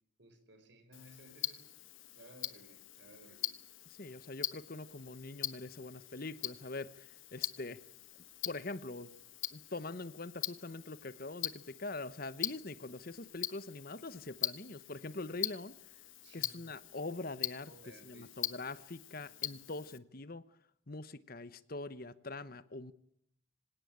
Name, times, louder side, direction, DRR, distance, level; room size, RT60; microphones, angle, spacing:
voice 1, 0.2-1.7 2.2-3.6 16.2-16.7 17.4-18.6 19.2-19.6, right 1 dB, 60° right, 9 dB, 4.7 m, -59 dB
Tick-tock, 0.9-20.0, left 15 dB, 75° left, 1.2 m, -43 dB
voice 2, 4.0-7.8 8.4-9.1 9.5-15.7 16.3-17.7 18.0-20.4 20.9-22.9, left 2 dB, 45° left, 15 dB, 1.0 m, -43 dB
26.0 x 18.0 x 8.8 m, 0.69 s
head